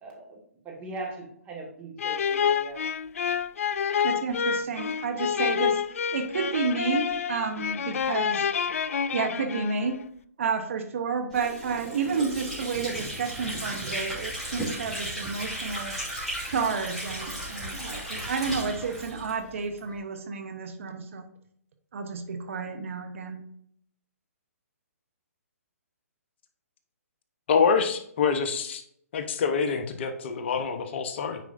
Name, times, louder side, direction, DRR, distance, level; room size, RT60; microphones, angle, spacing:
voice 1, 0.0-0.4 0.6-2.8, right 2 dB, 20° right, -2 dB, 2.0 m, -39 dB
sound 1, 2.0-10.0, left 7 dB, 65° left, 0.3 m, -28 dB
voice 2, 4.0-5.8 6.1-8.5 9.1-10.0 10.4-15.9 16.5-21.3 21.9-23.4, right 5 dB, 55° right, 6 dB, 0.9 m, -31 dB
Water / Sink (filling or washing), 11.3-19.9, right 1 dB, ahead, 2.9 m, -35 dB
voice 3, 27.5-28.8 29.1-31.4, left 6 dB, 45° left, 8 dB, 0.8 m, -26 dB
9.2 x 4.8 x 2.6 m, 0.68 s
figure-of-eight pair, 135°, 8 cm